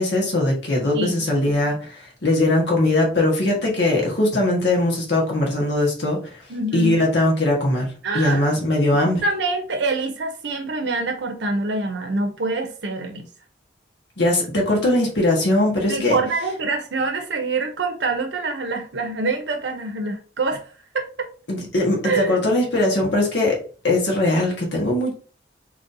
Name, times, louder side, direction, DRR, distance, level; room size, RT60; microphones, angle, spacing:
voice 1, 0.0-6.4 6.7-9.2 14.2-16.2 21.5-25.1, left 1 dB, 75° left, -1 dB, 1.3 m, -20 dB
voice 2, 0.9-1.2 6.5-7.0 8.0-8.4 8.9-13.3 15.9-20.7 20.9-21.3 22.0-22.4, right 3 dB, 80° right, 4 dB, 0.6 m, -25 dB
4.0 x 3.2 x 2.6 m, 0.38 s
head